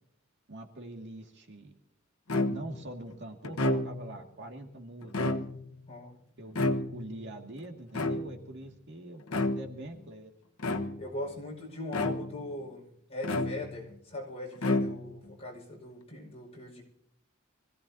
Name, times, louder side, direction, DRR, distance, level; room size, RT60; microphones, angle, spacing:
voice 1, 0.5-1.7 2.5-5.1 6.4-10.3, right 1 dB, 55° right, 2 dB, 2.1 m, -44 dB
sound 1, 2.3-2.8 3.4-4.2 5.0-5.8 6.5-7.2 7.9-8.6 9.3-9.8 10.6-11.2 11.9-12.5 13.2-13.9 14.6-15.3, left 2 dB, 85° left, 1.2 m, -31 dB
voice 2, 11.0-16.8, left 1 dB, 30° left, -2 dB, 5.3 m, -40 dB
25.5 x 16.0 x 2.8 m, 0.73 s
head